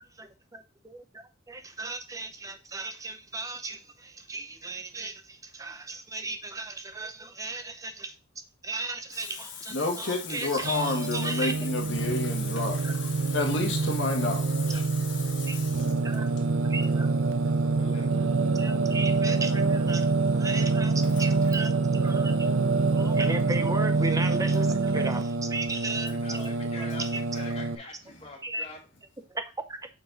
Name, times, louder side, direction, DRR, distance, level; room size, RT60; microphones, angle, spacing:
voice 1, 0.2-8.1 8.6-11.7 12.8-12.9 15.5-15.6 16.0-16.2 16.7-17.1 17.4-17.5 18.5-20.1 20.4-21.7 22.0-22.5 23.0-26.5 27.0-27.2 28.4-28.6 29.3-29.4 29.7-29.8, right 2 dB, 15° right, 0.6 m, -36 dB
voice 2, 9.7-15.9, left 3 dB, 60° left, 1.6 m, -30 dB
Singing, 10.6-27.7, right 3 dB, 75° right, 0.6 m, -26 dB
voice 3, 17.8-18.5 26.1-27.1 27.3-28.8, left 2 dB, 30° left, 2.2 m, -44 dB
6.5 x 4.6 x 3.9 m
head